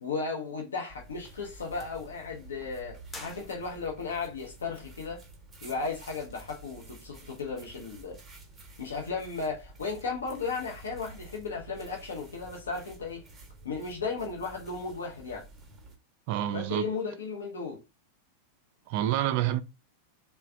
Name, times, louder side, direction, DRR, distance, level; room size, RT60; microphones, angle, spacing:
voice 1, 0.0-5.2 5.6-8.2 8.8-13.2 13.6-15.5 16.5-17.8, left 4 dB, 70° left, 0.7 m, -35 dB
sound 1, 0.9-16.0, right 2 dB, 15° right, 0.8 m, -50 dB
sound 2, 3.1-4.1, left 2 dB, 10° left, 0.7 m, -46 dB
voice 2, 16.3-16.9 18.9-19.6, right 12 dB, 45° right, 0.4 m, -28 dB
3.2 x 2.3 x 3.5 m
figure-of-eight pair, 90°, 0 cm